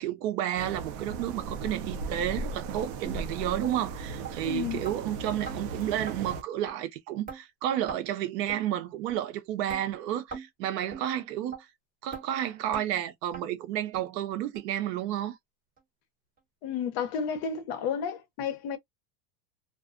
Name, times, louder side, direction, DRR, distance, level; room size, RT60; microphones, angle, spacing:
voice 1, 0.0-11.7 12.0-15.4, right 11 dB, 80° right, 0.8 m, -31 dB
sound 1, 0.6-6.4, right 4 dB, 40° right, 0.5 m, -37 dB
sound 2, 3.0-3.2 3.6-3.8 4.2-4.3 4.8-5.0 5.4-5.6 6.1-6.2 6.7-6.8 7.3-7.4 7.9-8.0 8.5-8.6 9.1-9.2 9.7-9.8 10.3-10.5 10.9-11.0 11.5-11.6 12.1-12.2 12.7-12.9 13.3-13.4 13.9-14.0 14.5-14.6 15.2-15.3 15.8-15.9, right 5 dB, 15° right, 1.2 m, -40 dB
voice 2, 4.4-4.8 16.6-18.8, left 7 dB, 50° left, 0.7 m, -31 dB
2.4 x 2.1 x 2.4 m
supercardioid pair, 130°, 49 cm